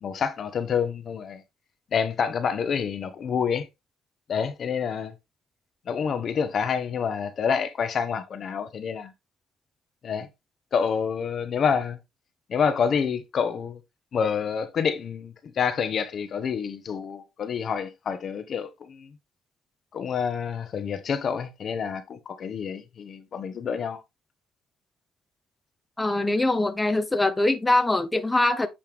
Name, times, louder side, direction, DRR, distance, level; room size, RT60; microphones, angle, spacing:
voice 1, 0.0-1.4 1.9-3.7 4.3-5.1 5.9-9.1 10.0-10.3 10.7-12.0 12.5-13.8 14.1-19.1 19.9-24.0, left 6 dB, 50° left, 1.0 m, -28 dB
voice 2, 26.0-28.7, left 2 dB, 15° left, 0.8 m, -23 dB
8.8 x 3.4 x 3.6 m
supercardioid pair, 80°, 0 cm